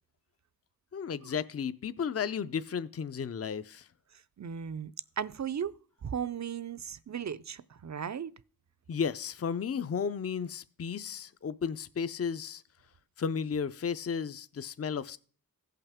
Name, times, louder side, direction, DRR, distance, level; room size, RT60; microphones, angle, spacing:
voice 1, 0.9-3.9 8.9-12.6 13.2-15.2, left 6 dB, 40° left, 0.5 m, -34 dB
voice 2, 4.4-4.9 5.2-5.7 6.0-8.3, right 8 dB, 50° right, 0.5 m, -36 dB
16.0 x 5.7 x 3.6 m
wide cardioid pair, 60°, 36 cm